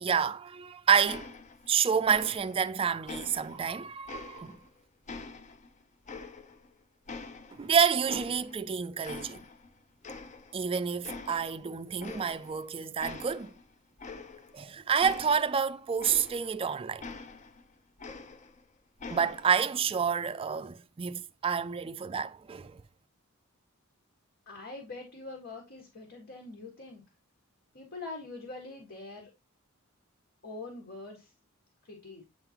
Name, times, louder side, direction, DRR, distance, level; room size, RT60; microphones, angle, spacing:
voice 1, 0.0-1.3 1.7-4.6 7.6-9.4 10.5-13.5 14.5-17.1 19.1-22.8, right 7 dB, 25° right, 0.3 m, -29 dB
sound 1, 1.1-1.8 2.1-2.7 3.1-4.7 5.1-6.7 7.1-8.7 9.0-9.7 10.0-10.7 11.0-11.6 12.0-12.6 13.0-16.6 17.0-18.6 19.0-19.6, left 4 dB, 35° left, 0.6 m, -45 dB
voice 2, 24.5-27.0 27.7-29.3 30.4-31.3 31.8-32.2, left 3 dB, 60° left, 1.8 m, -44 dB
8.8 x 3.8 x 2.9 m
head